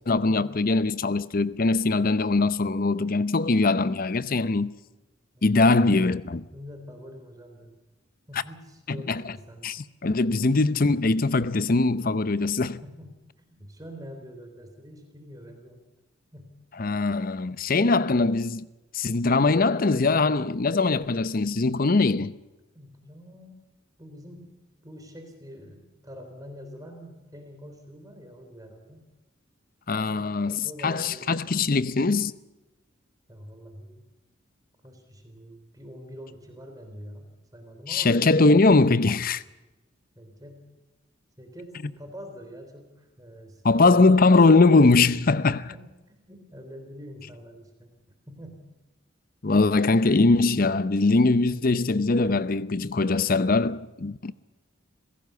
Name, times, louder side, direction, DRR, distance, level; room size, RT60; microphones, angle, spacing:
voice 1, 0.1-4.7 5.4-6.4 8.9-9.3 9.6-12.8 16.8-18.7 18.9-22.4 29.9-32.3 37.9-39.4 43.6-45.6 49.4-54.3, left 3 dB, 45° left, 0.7 m, -21 dB
voice 2, 5.3-6.0 6.5-7.7 8.3-9.7 12.8-15.8 16.3-16.5 22.7-23.6 24.0-24.5 24.8-29.0 30.6-31.7 33.3-34.0 34.8-38.2 40.1-40.7 41.4-44.3 45.7-45.8 46.1-47.9 48.3-48.6, equal, 20° right, 3.5 m, -45 dB
26.0 x 17.0 x 6.8 m
head